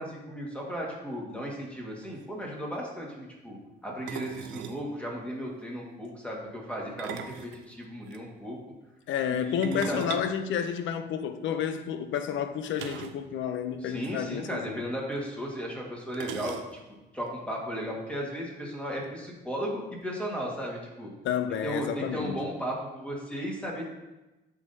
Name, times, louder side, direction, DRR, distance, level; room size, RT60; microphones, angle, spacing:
voice 1, 0.0-3.6 3.8-8.6 9.3-10.1 13.8-16.5 17.1-21.1 21.6-23.9, equal, 5° left, 1.6 m, -35 dB
sound 1, 1.7-1.8 2.0-2.3 4.1-4.9 6.8-8.2 9.6-11.3 12.8-13.3 13.5-13.6 13.9-14.1 15.1-15.2 16.1-17.0, right 8 dB, 80° right, 0.5 m, -41 dB
voice 2, 9.1-14.8 21.2-22.4, left 8 dB, 75° left, 0.5 m, -30 dB
9.3 x 3.7 x 2.7 m
cardioid pair, 90°, 20 cm